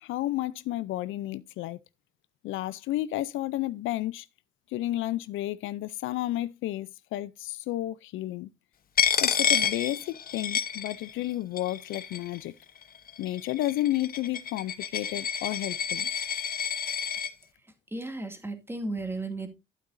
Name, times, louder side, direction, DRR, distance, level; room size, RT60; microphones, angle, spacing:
voice 1, 0.0-1.8 2.4-4.3 4.7-8.5 9.2-12.5 13.2-16.1, left 15 dB, 85° left, 0.5 m, -32 dB
Coin (dropping), 9.0-11.3 11.6-12.4 13.1-17.3, left 8 dB, 45° left, 0.9 m, -29 dB
voice 2, 17.9-19.5, right 2 dB, 10° right, 2.2 m, -34 dB
11.5 x 8.3 x 2.6 m
cardioid pair, 90°, 20 cm